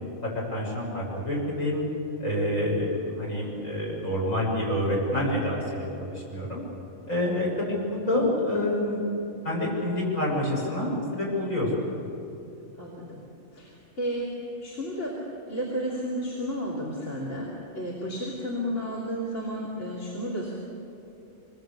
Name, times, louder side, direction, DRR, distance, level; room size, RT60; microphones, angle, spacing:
voice 1, 0.2-1.8 2.2-6.6 7.1-9.0 9.4-11.7, left 1 dB, 80° left, -4 dB, 7.5 m, -27 dB
voice 2, 12.8-13.2 13.5-14.3 14.6-15.2 15.5-20.5, equal, 65° left, -2 dB, 3.6 m, -32 dB
26.0 x 21.0 x 8.4 m, 2.9 s
omnidirectional pair, 1.4 m